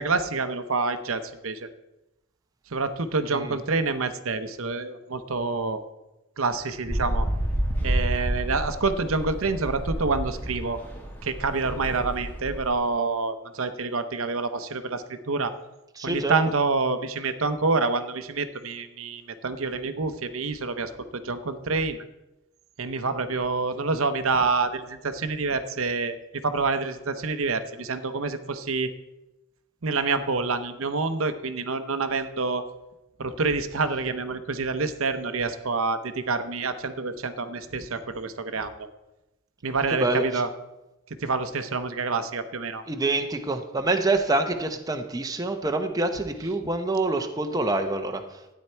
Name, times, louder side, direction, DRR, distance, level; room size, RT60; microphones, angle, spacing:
voice 1, 0.0-1.7 2.7-5.8 6.4-7.3 7.8-10.8 11.2-15.5 16.0-22.0 22.8-26.1 26.4-28.9 29.8-32.6 33.2-38.7 39.6-40.5 41.2-42.8, right 4 dB, 70° right, 10 dB, 0.8 m, -27 dB
sound 1, 6.9-12.7, right 1 dB, 10° left, 1.7 m, -29 dB
voice 2, 16.0-16.3 39.9-40.4 42.9-48.2, right 2 dB, 15° right, 5 dB, 0.7 m, -26 dB
13.0 x 9.5 x 4.4 m, 0.98 s
head